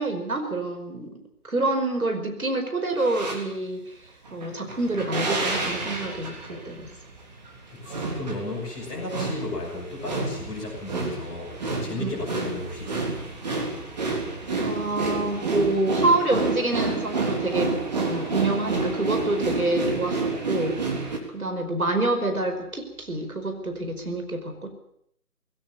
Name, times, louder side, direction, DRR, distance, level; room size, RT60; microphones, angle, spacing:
voice 1, 0.0-3.9 4.3-6.9 11.9-12.1 14.6-20.8 21.3-24.7, right 2 dB, 65° right, 5 dB, 5.1 m, -27 dB
sound 1, 3.0-3.4 4.3-21.2, right 3 dB, 25° right, 3.6 m, -29 dB
voice 2, 7.7-13.2, left 2 dB, 10° left, -7 dB, 6.0 m, -34 dB
20.5 x 18.0 x 8.7 m, 0.70 s
figure-of-eight pair, 155°, 46 cm